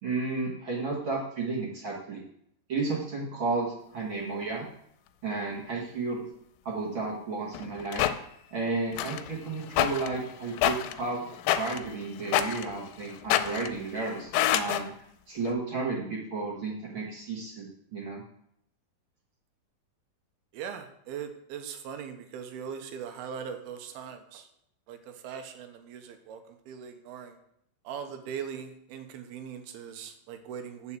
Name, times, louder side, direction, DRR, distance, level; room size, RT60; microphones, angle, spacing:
voice 1, 0.0-2.2 2.7-4.6 5.2-6.2 6.6-8.1 8.5-14.9 15.3-18.2, right 3 dB, 55° right, -2 dB, 1.4 m, -33 dB
sound 1, 7.5-8.1 8.9-14.8 15.5-15.6, left 12 dB, 80° left, 2.2 m, -28 dB
voice 2, 20.5-24.5 24.9-27.4 27.8-31.0, right 7 dB, 85° right, 7 dB, 2.7 m, -40 dB
8.3 x 4.8 x 7.4 m, 0.74 s
omnidirectional pair, 4.4 m